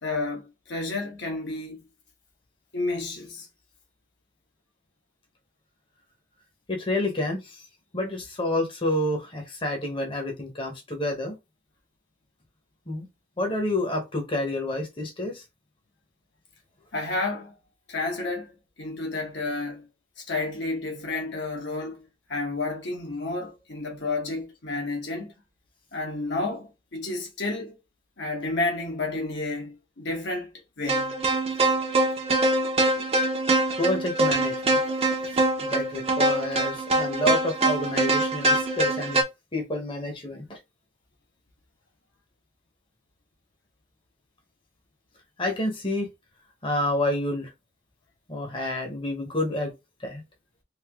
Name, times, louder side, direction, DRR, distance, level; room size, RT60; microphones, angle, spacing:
voice 1, 0.0-1.8 2.7-3.5 16.9-17.6 17.9-19.9 20.2-22.0 22.3-25.3 25.9-27.8 28.2-31.1, left 2 dB, 70° left, 1.3 m, -31 dB
voice 2, 6.7-7.6 7.9-11.4 12.9-13.1 13.4-15.4 33.8-34.8 35.6-39.2 39.5-40.6 45.4-46.1 46.6-47.5 48.3-49.7 50.0-50.2, left 1 dB, 30° left, 0.9 m, -29 dB
sound 1, 30.9-39.2, right 2 dB, 35° right, 0.7 m, -24 dB
3.4 x 2.7 x 3.5 m
head